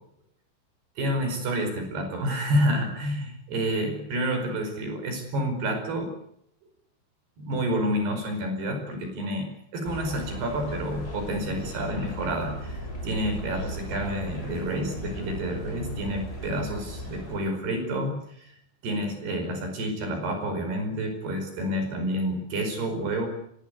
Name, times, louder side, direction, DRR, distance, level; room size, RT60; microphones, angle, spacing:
voice 1, 1.0-6.1 7.4-9.5 9.7-18.6 18.8-23.3, equal, 70° right, 5 dB, 7.1 m, -29 dB
sound 1, 9.9-17.4, equal, 15° left, 7.3 m, -37 dB
24.5 x 20.5 x 8.3 m, 0.74 s
omnidirectional pair, 4.8 m